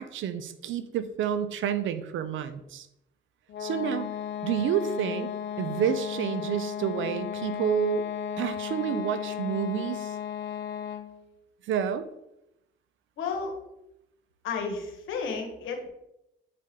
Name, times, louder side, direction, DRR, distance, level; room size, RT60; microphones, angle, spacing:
voice 1, 0.0-2.9 3.6-4.1 4.4-5.3 5.6-8.0 8.4-10.2 11.7-12.1, right 8 dB, 75° right, 12 dB, 0.6 m, -29 dB
sound 1, 3.5-11.2, left 8 dB, 65° left, 0.7 m, -35 dB
voice 2, 13.2-13.6 14.4-15.9, left 5 dB, 85° left, 4 dB, 1.4 m, -32 dB
8.2 x 4.3 x 3.7 m, 0.86 s
cardioid pair, 90°, 20 cm